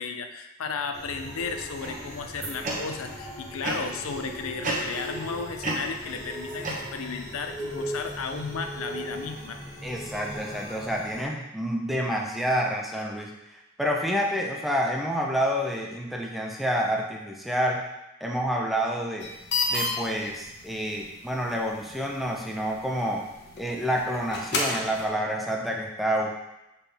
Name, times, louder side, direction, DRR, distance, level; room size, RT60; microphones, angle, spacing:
voice 1, 0.0-9.6, left 5 dB, 75° left, 6 dB, 0.6 m, -34 dB
sound 1, 0.9-11.2, equal, 15° left, 1.4 m, -39 dB
sound 2, 1.8-3.2 3.6-4.1 4.6-5.3 5.6-7.3, right 2 dB, 35° right, 1.1 m, -33 dB
voice 2, 9.8-13.3 13.8-17.8 18.2-19.3 19.7-23.3 23.6-26.3, equal, ahead, -1 dB, 0.6 m, -28 dB
sound 3, 19.2-25.0, left 3 dB, 50° left, 1.1 m, -33 dB
7.3 x 4.2 x 3.4 m, 0.94 s
head